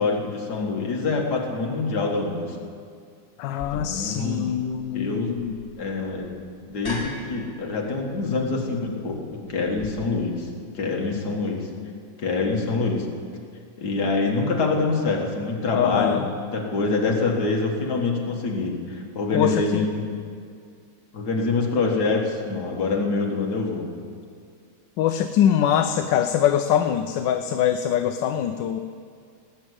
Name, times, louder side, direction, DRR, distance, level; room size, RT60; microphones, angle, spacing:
voice 1, 0.0-2.6 3.7-4.5 4.9-5.3 5.8-6.3 6.7-10.5 10.7-11.7 12.2-13.1 13.8-20.1 21.1-23.9, left 3 dB, 60° left, 0 dB, 2.1 m, -25 dB
voice 2, 3.4-5.6 15.7-16.3 19.3-19.8 25.0-28.8, left 10 dB, 80° left, 8 dB, 1.2 m, -23 dB
sound 1, 3.6-9.9, left 1 dB, 35° left, 2.7 m, -41 dB
18.5 x 6.9 x 8.0 m, 2.2 s
omnidirectional pair, 2.0 m